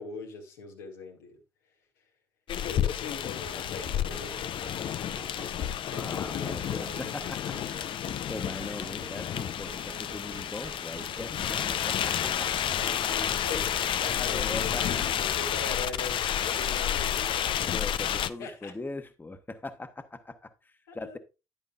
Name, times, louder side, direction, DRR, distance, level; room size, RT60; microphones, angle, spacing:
voice 1, 0.0-1.4 2.6-4.8 5.1-7.2 7.8-7.9 12.8-14.9 15.2-17.6 18.4-18.7 20.9-21.2, left 4 dB, 80° left, 2.2 m, -41 dB
sound 1, 2.5-18.3, left 10 dB, 55° left, 0.6 m, -30 dB
sound 2, 3.2-13.8, right 3 dB, 30° right, 1.8 m, -49 dB
voice 2, 6.0-7.6 8.0-12.8 14.3-15.1 17.4-21.2, left 2 dB, 20° left, 1.5 m, -40 dB
10.5 x 10.0 x 2.4 m
figure-of-eight pair, 45°, 11 cm